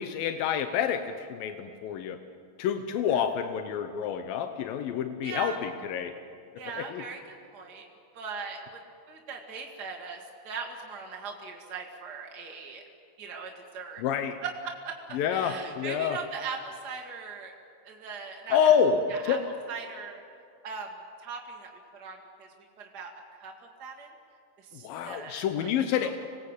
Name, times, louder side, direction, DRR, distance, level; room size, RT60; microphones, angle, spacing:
voice 1, 0.0-2.2 2.6-6.1 6.7-7.1 14.0-14.4 15.1-16.2 18.5-19.0 19.3-19.4 24.8-26.1, left 8 dB, 70° left, 7 dB, 2.3 m, -28 dB
voice 2, 5.2-5.6 6.6-7.8 8.1-8.8 9.1-12.8 13.2-14.0 14.4-14.9 15.3-17.5 17.8-18.7 19.1-19.4 19.7-20.2 20.6-20.9 21.2-22.5 22.8-23.1 23.4-23.5 23.8-24.1 24.7-25.7 26.0-26.1, right 5 dB, 40° right, 0 dB, 1.4 m, -39 dB
27.0 x 20.0 x 8.2 m, 2.3 s
omnidirectional pair, 5.0 m